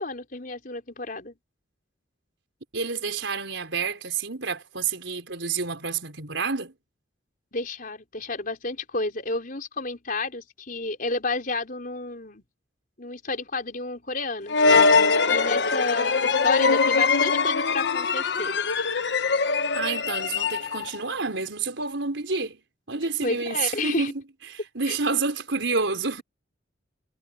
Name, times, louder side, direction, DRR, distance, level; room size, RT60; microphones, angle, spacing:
voice 1, 0.0-1.4 7.5-12.4 13.0-14.6 15.3-18.6 23.2-24.1 24.9-25.0, left 3 dB, 45° left, 4.6 m, -31 dB
voice 2, 2.7-6.7 19.7-22.6 22.9-24.2 24.7-26.2, right 4 dB, 75° right, 4.4 m, -29 dB
sound 1, 14.5-21.0, left 4 dB, 65° left, 0.9 m, -22 dB
head